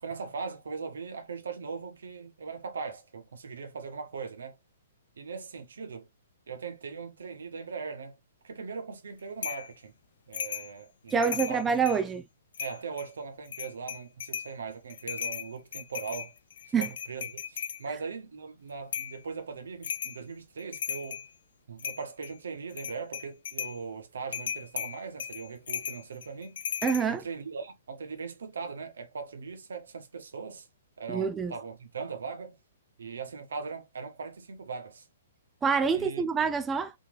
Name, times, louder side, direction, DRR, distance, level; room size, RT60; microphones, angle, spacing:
voice 1, 0.0-4.6 5.2-6.1 6.5-8.2 8.4-9.9 10.3-11.6 12.6-16.3 16.7-21.2 21.7-26.6 27.1-30.7 31.0-32.6 33.0-35.1 35.9-36.2, right 5 dB, 65° right, 1.1 m, -40 dB
sound 1, 9.4-9.7 10.3-10.7 11.1-12.0 12.5-13.1 13.5-14.5 14.9-17.8 18.9-19.2 19.8-20.2 20.6-21.3 21.8-22.3 22.7-23.8 24.3-27.1, left 7 dB, 55° left, 0.6 m, -36 dB
voice 2, 11.1-12.2 16.7-16.9 26.8-27.2 31.1-31.5 35.6-36.9, right 6 dB, 15° right, 0.3 m, -26 dB
4.2 x 2.9 x 3.2 m
figure-of-eight pair, 120°, 0 cm